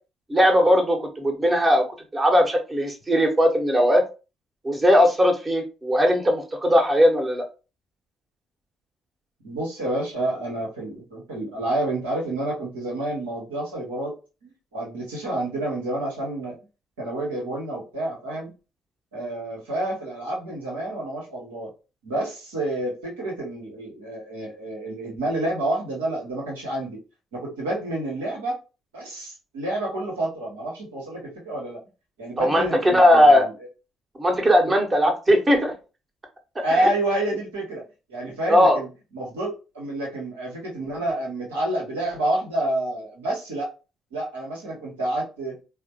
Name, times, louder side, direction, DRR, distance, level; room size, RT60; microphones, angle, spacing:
voice 1, 0.3-1.8 2.1-4.0 4.6-7.4 32.4-33.4 34.2-35.7 36.8-36.9 38.5-38.8, equal, 25° right, 4 dB, 1.1 m, -18 dB
voice 2, 9.4-14.2 14.4-16.6 17.0-18.5 19.1-21.7 22.0-27.0 27.3-28.6 28.9-31.8 32.2-33.5 36.6-37.8 38.1-38.9 39.1-43.7 44.1-45.6, right 1 dB, 75° right, -2 dB, 1.2 m, -29 dB
4.1 x 2.1 x 2.9 m, 0.31 s
figure-of-eight pair, 45°, 0 cm